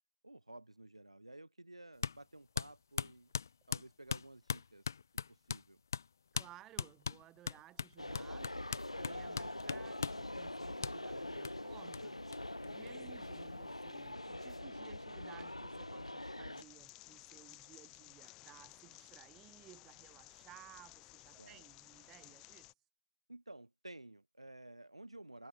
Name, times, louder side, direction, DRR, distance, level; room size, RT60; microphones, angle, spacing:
voice 1, 0.2-3.3 3.7-4.9 5.3-5.8 13.1-13.2 21.4-21.6 23.3-25.5, right 1 dB, 75° right, 6.5 m, -53 dB
sound 1, 2.0-2.2 2.6-5.7 5.9-6.1 6.3-6.5 6.8-10.2 10.8-11.0 11.4-11.5 11.9-12.0 12.3-12.4 12.6-13.4, left 6 dB, 35° left, 0.4 m, -39 dB
voice 2, 6.3-8.5 8.9-12.2 12.6-22.7, right 14 dB, 10° right, 0.8 m, -59 dB
sound 2, 8.0-16.6, left 1 dB, 80° left, 1.0 m, -44 dB
sound 3, 16.6-22.7, left 22 dB, 10° left, 1.4 m, -57 dB
figure-of-eight pair, 155°, 3 cm